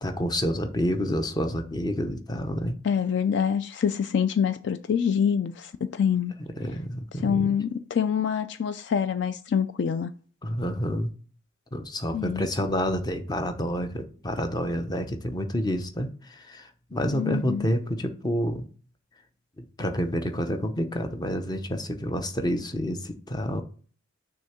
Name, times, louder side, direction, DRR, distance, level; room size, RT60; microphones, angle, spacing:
voice 1, 0.0-2.7 6.4-7.5 10.4-11.1 11.7-18.7 19.6-23.6, equal, 20° left, 0.7 m, -29 dB
voice 2, 2.8-6.3 7.1-10.1 12.1-12.5 17.1-17.7, left 7 dB, 60° left, 0.3 m, -26 dB
6.3 x 3.5 x 5.7 m
head